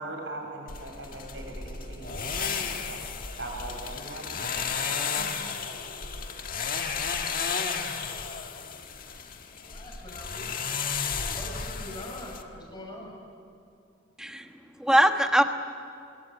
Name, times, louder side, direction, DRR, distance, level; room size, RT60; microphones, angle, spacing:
voice 1, 0.0-3.0 3.4-5.3, right 2 dB, 65° right, 1 dB, 7.3 m, -40 dB
sound 1, 0.7-12.4, left 6 dB, 45° left, 1.7 m, -33 dB
voice 2, 9.6-10.7 11.4-13.1, left 1 dB, 20° left, 0 dB, 6.4 m, -43 dB
voice 3, 14.2-15.4, equal, 5° right, 6 dB, 1.2 m, -22 dB
26.5 x 22.0 x 9.6 m, 2.6 s
head